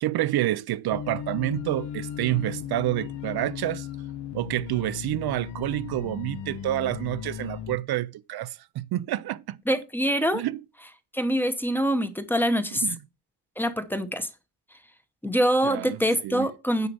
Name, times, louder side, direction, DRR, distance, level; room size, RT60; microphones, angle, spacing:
voice 1, 0.0-3.9 4.3-9.6 10.3-10.6 12.8-13.0 15.6-16.5, right 14 dB, 65° right, 0.5 m, -28 dB
sound 1, 0.9-7.8, left 9 dB, 85° left, 1.0 m, -36 dB
voice 2, 9.7-10.4 11.1-12.8 13.6-14.3 15.2-16.9, equal, 5° left, 0.8 m, -24 dB
9.2 x 6.5 x 5.3 m
cardioid pair, 150°, 41 cm